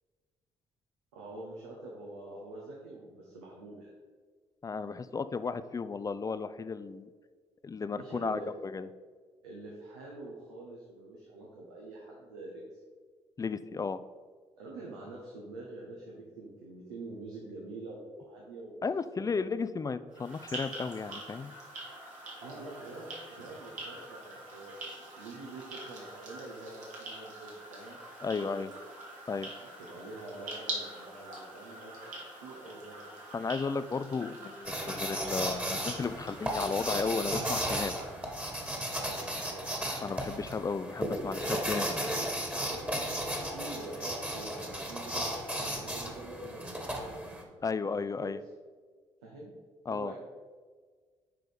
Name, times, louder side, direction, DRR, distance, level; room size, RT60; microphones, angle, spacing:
voice 1, 1.1-3.9 7.9-8.5 9.4-12.8 14.6-18.8 22.4-28.7 29.8-32.1 32.4-33.1 38.9-39.8 42.6-45.3 45.6-47.2 47.8-48.3 49.2-49.5 49.9-50.2, right 2 dB, 85° right, -3 dB, 1.0 m, -46 dB
voice 2, 4.6-7.1 7.6-8.9 13.4-14.0 18.8-21.5 28.2-28.7 29.3-29.5 33.3-37.9 40.0-42.0 47.6-48.4 49.9-50.1, left 4 dB, 25° left, 13 dB, 0.4 m, -34 dB
sound 1, 20.1-38.6, right 2 dB, 65° right, 1.8 m, -45 dB
sound 2, 34.7-47.4, equal, 10° right, 1.6 m, -35 dB
6.2 x 4.6 x 5.1 m, 1.5 s
hypercardioid pair, 45°, 14 cm